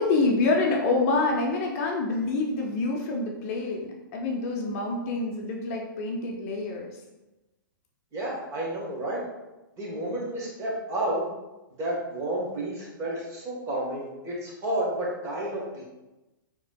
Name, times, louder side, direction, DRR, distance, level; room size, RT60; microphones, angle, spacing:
voice 1, 0.0-7.0, left 3 dB, 40° left, 0 dB, 0.6 m, -27 dB
voice 2, 8.1-9.2 9.8-11.3 11.8-15.8, right 1 dB, 25° right, -4 dB, 1.1 m, -31 dB
4.0 x 3.0 x 2.2 m, 1.0 s
hypercardioid pair, 120°, 12 cm